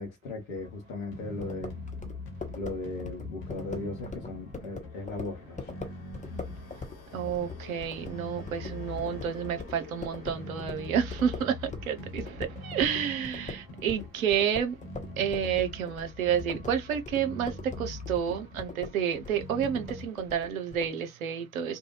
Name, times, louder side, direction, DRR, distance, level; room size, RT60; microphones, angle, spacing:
voice 1, 0.0-1.7 2.6-5.7 11.7-12.1, left 2 dB, 85° left, 0.8 m, -37 dB
sound 1, 0.6-20.1, left 2 dB, 60° left, 1.0 m, -43 dB
sound 2, 1.4-11.9 12.2-20.9, left 3 dB, 20° left, 0.9 m, -42 dB
voice 2, 7.1-14.8 15.2-21.8, right 8 dB, 90° right, 0.5 m, -30 dB
2.6 x 2.1 x 2.9 m
figure-of-eight pair, 45°, 40 cm